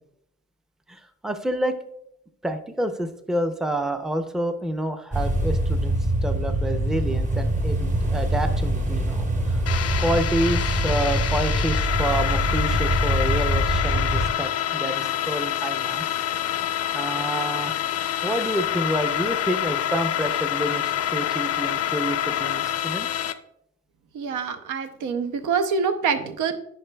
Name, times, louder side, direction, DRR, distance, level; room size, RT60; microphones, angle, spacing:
voice 1, 0.9-1.8 2.4-9.7 10.0-16.0 16.9-17.7 18.2-23.1, right 1 dB, ahead, 8 dB, 0.5 m, -28 dB
sound 1, 5.1-14.3, right 1 dB, 25° right, 0.9 m, -24 dB
sound 2, 9.7-23.3, left 11 dB, 55° left, 0.5 m, -27 dB
voice 2, 24.1-26.5, right 6 dB, 80° right, 9 dB, 0.7 m, -25 dB
9.9 x 5.0 x 2.2 m, 0.74 s
cardioid pair, 90°, 30 cm